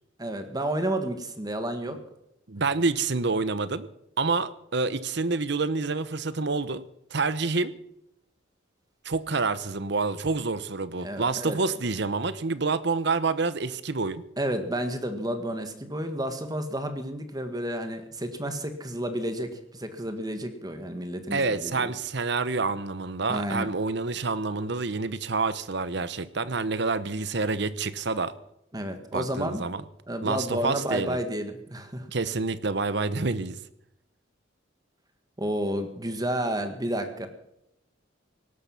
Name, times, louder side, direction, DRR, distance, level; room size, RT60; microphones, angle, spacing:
voice 1, 0.2-2.0 11.0-11.6 14.4-21.9 23.3-23.7 28.7-29.7 30.1-32.1 35.4-37.3, right 1 dB, 20° right, 7 dB, 1.7 m, -31 dB
voice 2, 2.5-3.9 4.2-6.8 7.1-7.7 9.0-14.2 21.3-28.3 29.1-29.8 30.2-31.2 32.1-33.6, right 4 dB, 65° right, 15 dB, 1.0 m, -28 dB
18.0 x 12.5 x 5.9 m, 0.80 s
head